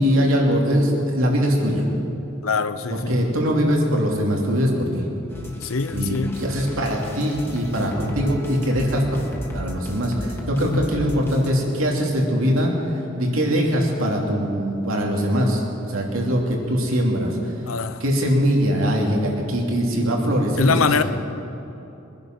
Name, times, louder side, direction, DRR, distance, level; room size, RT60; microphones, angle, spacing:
voice 1, 0.0-1.9 2.9-5.0 5.9-9.0 9.5-12.7 13.2-15.6 15.9-17.4 18.0-21.0, equal, 85° right, 0 dB, 2.8 m, -21 dB
voice 2, 2.4-3.1 5.6-6.4 10.6-10.9 17.7-18.0 19.7-19.9 20.6-21.0, left 4 dB, 85° left, 12 dB, 0.8 m, -23 dB
sound 1, 5.3-11.5, left 1 dB, 10° left, 1.8 m, -36 dB
22.5 x 10.5 x 6.1 m, 2.8 s
head